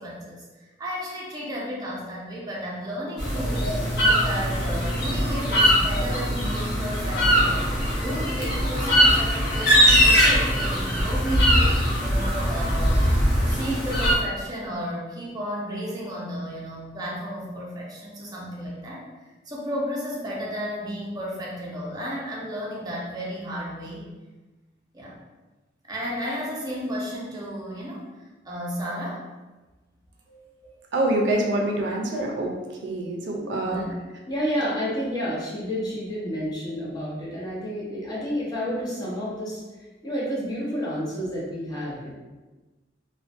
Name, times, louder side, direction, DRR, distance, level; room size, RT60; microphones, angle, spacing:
voice 1, 0.0-3.7 4.0-7.7 8.0-13.1 13.4-24.0 24.9-25.2 25.9-28.1 28.4-29.2 30.6-30.9 33.4-33.9, equal, 20° right, -5 dB, 0.6 m, -33 dB
sound 1, 3.2-14.1, equal, 65° left, 0.7 m, -21 dB
voice 2, 30.9-32.5 32.8-33.8, right 1 dB, 75° right, 0 dB, 0.4 m, -25 dB
voice 3, 34.3-39.6 40.0-42.1, equal, 20° left, -7 dB, 0.6 m, -29 dB
2.4 x 2.1 x 2.5 m, 1.2 s
head